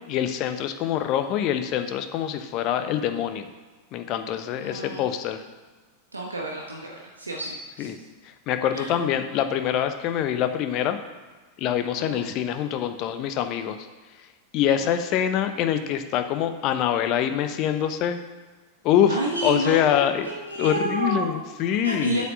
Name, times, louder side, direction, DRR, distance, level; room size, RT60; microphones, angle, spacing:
voice 1, 0.1-3.5 3.9-5.4 7.8-8.0 8.5-11.0 11.6-13.8 14.5-18.2 18.8-20.3 20.6-22.3, left 10 dB, 40° left, 8 dB, 0.9 m, -25 dB
voice 2, 4.6-5.1 6.1-7.9 8.7-9.0 12.0-12.3 14.7-15.0 19.1-21.4 21.8-22.3, right 2 dB, 80° right, -1 dB, 1.1 m, -30 dB
8.1 x 7.4 x 6.2 m, 1.3 s
figure-of-eight pair, 90°, 0 cm